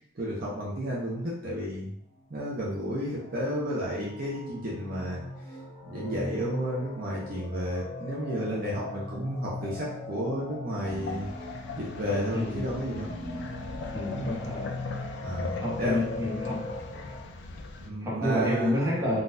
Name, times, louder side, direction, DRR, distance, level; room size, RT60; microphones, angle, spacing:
voice 1, 0.2-1.9 2.3-5.2 5.9-11.3 11.8-13.1 14.1-14.4 15.2-16.1 17.8-18.7, equal, 45° right, -5 dB, 0.6 m, -32 dB
sound 1, 2.5-17.2, left 2 dB, 40° left, 1.0 m, -40 dB
sound 2, 10.8-17.9, left 3 dB, 60° left, 0.4 m, -39 dB
voice 2, 12.3-12.7 13.9-14.8 15.6-16.6 18.0-19.2, left 1 dB, 15° right, -7 dB, 1.0 m, -29 dB
3.9 x 2.3 x 2.6 m, 0.71 s
head